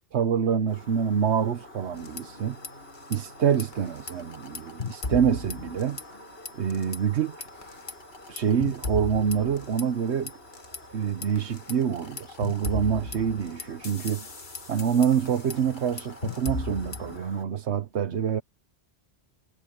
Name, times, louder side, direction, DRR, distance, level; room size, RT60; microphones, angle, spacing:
voice 1, 0.1-2.6 3.1-6.0 6.6-7.3 8.3-10.3 10.9-14.3 14.7-18.4, right 7 dB, 85° right, 1.2 m, -26 dB
sound 1, 0.7-17.4, left 1 dB, 70° left, 8.4 m, -49 dB
sound 2, 1.9-2.7 3.0-3.2 3.5-6.2 6.5-7.0 7.4-10.8 11.2-17.2, left 3 dB, 50° left, 1.6 m, -36 dB
omnidirectional pair, 1.1 m